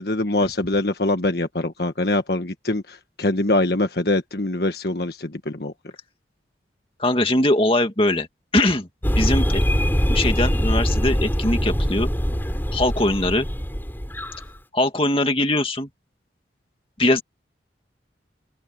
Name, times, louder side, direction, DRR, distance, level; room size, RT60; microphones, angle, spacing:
voice 1, 0.0-5.7, left 2 dB, 55° left, 1.5 m, -23 dB
voice 2, 7.0-8.3 8.5-8.9 9.2-9.6 10.1-12.1 12.7-13.5 14.7-15.9 17.0-17.2, left 1 dB, 30° left, 2.2 m, -21 dB
Victoria Rainforest, 9.0-14.5, equal, 10° left, 6.5 m, -23 dB
open air
head